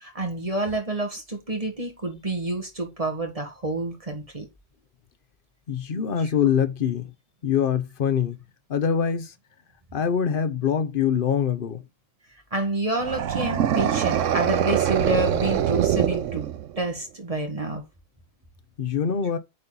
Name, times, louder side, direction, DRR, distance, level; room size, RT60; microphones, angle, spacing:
voice 1, 0.0-4.5 12.5-16.4 16.8-17.8, right 2 dB, 30° right, 1.8 m, -28 dB
voice 2, 5.7-7.1 7.4-8.4 8.7-9.3 9.9-11.8 18.8-19.4, left 8 dB, 50° left, 0.9 m, -24 dB
sound 1, 13.0-16.9, right 9 dB, 75° right, 1.1 m, -24 dB
8.7 x 4.3 x 4.0 m
omnidirectional pair, 1.3 m